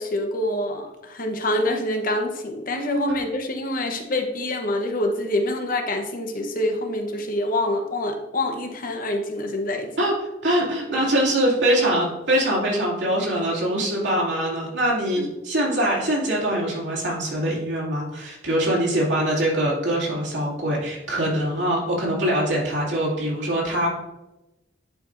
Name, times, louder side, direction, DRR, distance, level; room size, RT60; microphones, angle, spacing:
voice 1, 0.0-9.9, left 1 dB, 50° left, 4 dB, 0.9 m, -26 dB
voice 2, 10.4-23.9, right 1 dB, 75° right, -5 dB, 2.5 m, -23 dB
10.5 x 4.8 x 2.6 m, 0.97 s
head